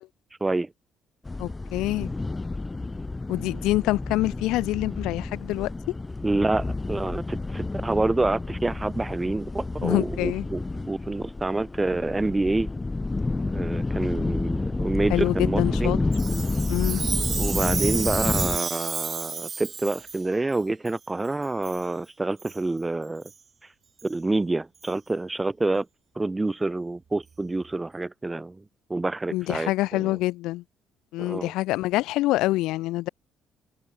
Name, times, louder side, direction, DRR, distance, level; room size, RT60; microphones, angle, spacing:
voice 1, 0.4-0.7 6.2-12.7 13.5-16.0 17.4-23.2 24.0-25.9 26.1-28.6 28.9-30.2 31.2-31.5, right 2 dB, 20° right, 1.4 m, -27 dB
sound 1, 1.2-18.6, left 3 dB, 25° left, 4.6 m, -30 dB
voice 2, 1.4-2.1 3.3-5.7 9.8-10.5 15.1-16.0 16.7-17.0 29.3-30.6 31.1-33.1, left 18 dB, 75° left, 0.7 m, -26 dB
Chime, 16.1-20.2 20.9-21.0 21.6-21.8 22.4-22.6 23.2-23.3 24.0-24.1 24.8-24.9, right 6 dB, 45° right, 1.3 m, -31 dB
hypercardioid pair, 55°, 0 cm